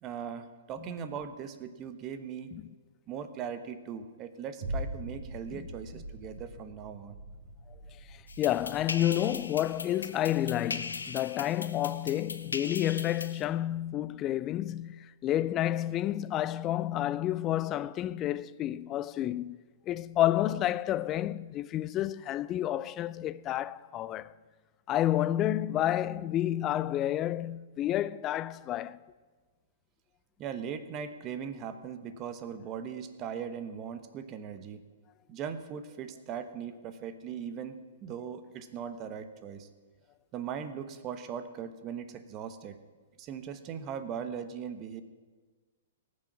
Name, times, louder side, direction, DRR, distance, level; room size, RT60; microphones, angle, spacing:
voice 1, 0.0-2.5 3.1-7.2 30.4-34.8 35.3-37.8 38.0-39.7 40.3-42.8 43.2-45.0, right 7 dB, 30° right, 1.0 m, -39 dB
sound 1, 4.6-13.2 13.6-13.7, right 1 dB, 60° right, 3.9 m, -43 dB
voice 2, 8.1-19.6 19.9-24.3 24.9-29.0, left 13 dB, 30° left, 0.4 m, -30 dB
sound 2, 8.3-13.4, left 4 dB, 85° left, 0.8 m, -40 dB
18.5 x 6.3 x 6.0 m
hypercardioid pair, 120°, 0 cm